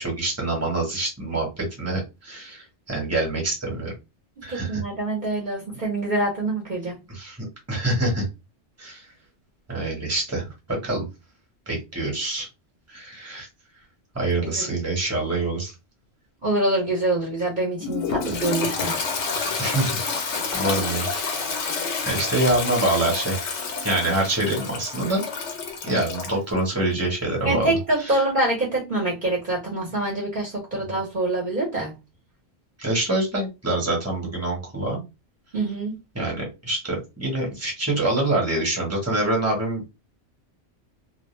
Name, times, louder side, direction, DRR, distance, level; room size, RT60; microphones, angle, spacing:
voice 1, 0.0-3.9 4.4-4.8 7.1-8.2 8.8-9.0 9.7-11.1 11.7-12.5 12.9-13.5 14.1-15.7 19.6-20.0 20.5-21.1 21.7-23.4 23.8-25.2 25.8-27.8 28.1-28.2 32.8-35.0 36.1-39.9, right 2 dB, 15° right, 1.1 m, -25 dB
voice 2, 4.5-7.0 14.4-14.7 16.4-19.0 27.4-31.9 35.5-36.0, right 2 dB, 45° right, 0.9 m, -25 dB
Toilet flush, 17.8-26.4, left 5 dB, 90° left, 1.0 m, -29 dB
2.4 x 2.1 x 3.1 m
omnidirectional pair, 1.2 m